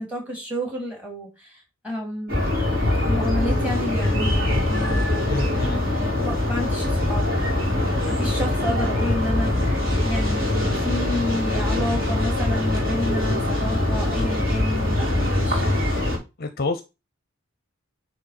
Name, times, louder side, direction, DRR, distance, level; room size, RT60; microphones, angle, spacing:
voice 1, 0.0-2.4 3.0-5.7 5.9-15.7, left 1 dB, 5° right, 2.5 m, -31 dB
sound 1, 2.3-16.2, left 1 dB, 45° right, 2.7 m, -23 dB
voice 2, 5.3-6.0 16.4-16.8, left 3 dB, 45° left, 0.6 m, -28 dB
9.2 x 3.1 x 4.2 m
head